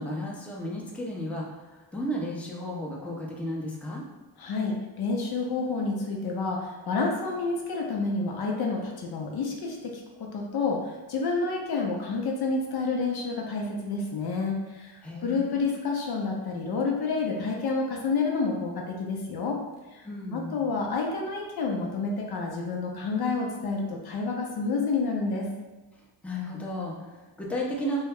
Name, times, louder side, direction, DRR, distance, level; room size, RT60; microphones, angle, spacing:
voice 1, 0.0-4.0 15.0-15.6 20.0-20.6 26.2-28.0, equal, 5° left, -3 dB, 0.6 m, -34 dB
voice 2, 4.4-19.6 19.9-25.5, left 4 dB, 55° left, 0 dB, 0.5 m, -29 dB
2.2 x 2.0 x 3.4 m, 1.2 s
supercardioid pair, 65°, 47 cm